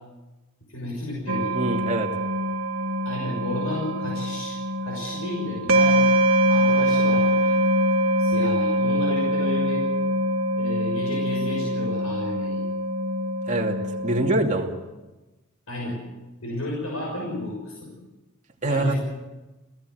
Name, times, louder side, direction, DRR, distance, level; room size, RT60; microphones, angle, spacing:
voice 1, 0.7-1.5 3.0-4.6 4.8-6.1 6.5-7.5 8.2-9.8 10.5-12.6 15.7-16.0 16.4-17.9 18.7-19.0, left 1 dB, 85° left, -1 dB, 6.3 m, -32 dB
sound 1, 1.3-14.4, equal, 90° right, 1.7 m, -23 dB
voice 2, 1.5-2.1 13.5-13.8 14.0-14.7 18.6-18.9, right 2 dB, 35° right, 1 dB, 2.7 m, -24 dB
28.5 x 16.5 x 8.0 m, 1.1 s
head